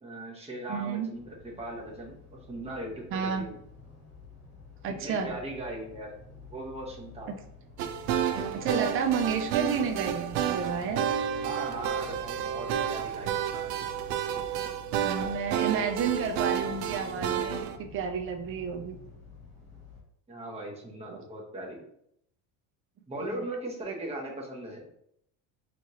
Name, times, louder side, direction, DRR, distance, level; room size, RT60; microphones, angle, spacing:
voice 1, 0.0-3.6 5.0-6.1 6.5-7.4 11.4-13.4 20.3-21.8 23.1-24.8, right 1 dB, 15° right, -1 dB, 0.8 m, -39 dB
voice 2, 0.7-1.1 3.1-3.5 4.8-5.3 8.5-11.1 14.6-14.7 15.0-19.0 21.1-21.2 23.2-23.4, right 6 dB, 30° right, 6 dB, 0.4 m, -31 dB
sound 1, 1.1-20.0, left 4 dB, 5° left, 1.4 m, -50 dB
sound 2, 7.8-17.8, right 9 dB, 90° right, 0.5 m, -30 dB
4.6 x 2.5 x 2.7 m, 0.72 s
cardioid pair, 135°, 47 cm